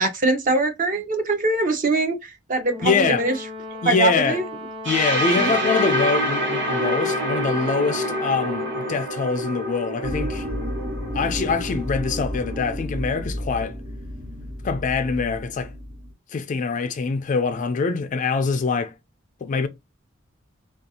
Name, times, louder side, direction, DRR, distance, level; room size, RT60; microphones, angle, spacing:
voice 1, 0.0-3.4 3.8-4.4 5.3-5.5, right 2 dB, 45° right, 0.6 m, -22 dB
Brass instrument, 2.7-9.1, left 1 dB, 25° right, 1.0 m, -36 dB
voice 2, 2.8-3.2 3.8-4.4 4.9-10.5 11.1-13.7 14.6-15.7 16.3-18.9 19.4-19.7, left 5 dB, 40° left, 0.3 m, -24 dB
sound 1, 4.8-12.7, equal, 65° right, 1.1 m, -27 dB
sound 2, 10.0-16.1, equal, 85° right, 1.2 m, -32 dB
2.5 x 2.3 x 2.6 m
head